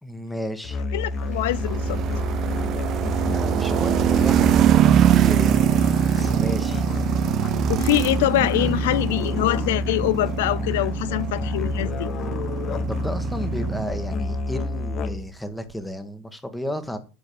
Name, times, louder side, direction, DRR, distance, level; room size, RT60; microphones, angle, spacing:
voice 1, 0.0-0.8 3.2-5.7 6.1-6.8 12.9-17.0, equal, 5° left, 1.8 m, -33 dB
Musical instrument, 0.6-15.4, left 2 dB, 45° left, 1.1 m, -28 dB
voice 2, 0.9-2.0 7.7-12.1, left 16 dB, 80° left, 0.4 m, -24 dB
sound 1, 1.3-14.5, right 12 dB, 45° right, 0.6 m, -23 dB
10.5 x 4.7 x 7.0 m
supercardioid pair, 110°, 0 cm